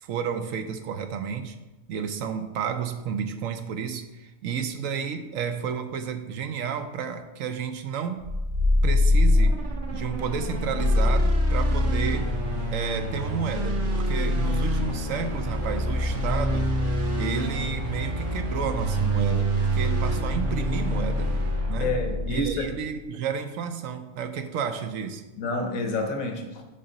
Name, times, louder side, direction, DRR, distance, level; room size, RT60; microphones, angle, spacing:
voice 1, 0.0-1.6 1.9-8.2 8.8-9.6 9.9-12.3 12.7-21.3 21.7-21.9 22.3-25.3, right 7 dB, 75° right, 8 dB, 1.0 m, -31 dB
sound 1, 8.2-22.8, left 1 dB, 55° right, 1.9 m, -25 dB
voice 2, 21.8-22.7 25.4-26.6, left 2 dB, 75° left, 4 dB, 1.4 m, -28 dB
7.8 x 5.4 x 3.9 m, 1.0 s
omnidirectional pair, 1.4 m